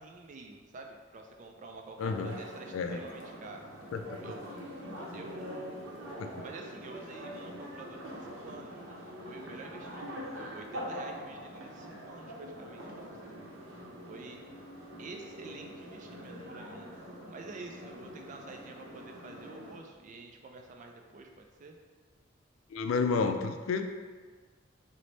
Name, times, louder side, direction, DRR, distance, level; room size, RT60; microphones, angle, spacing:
voice 1, 0.0-3.6 4.2-4.4 5.1-8.9 9.3-13.4 14.1-14.4 15.0-16.9 17.3-21.8, right 3 dB, 40° right, 3 dB, 0.3 m, -48 dB
voice 2, 2.0-2.4 2.7-3.0 3.9-4.0 6.2-6.3 22.7-23.9, left 4 dB, 85° left, 6 dB, 0.3 m, -30 dB
sound 1, 2.0-19.7, equal, 80° right, 0.6 m, -44 dB
3.1 x 2.1 x 3.9 m, 1.5 s
head